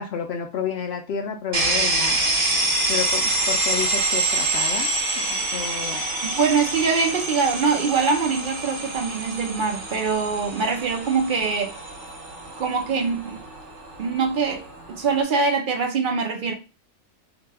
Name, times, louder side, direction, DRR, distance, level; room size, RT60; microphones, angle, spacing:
voice 1, 0.0-2.2 2.9-4.9 5.2-6.0, left 7 dB, 65° left, 0.6 m, -30 dB
sound 1, 1.5-15.2, right 2 dB, 45° right, 1.1 m, -26 dB
voice 2, 6.2-11.8 12.5-13.4 14.0-16.5, right 5 dB, 75° right, 0.4 m, -23 dB
2.8 x 2.2 x 3.2 m
omnidirectional pair, 1.5 m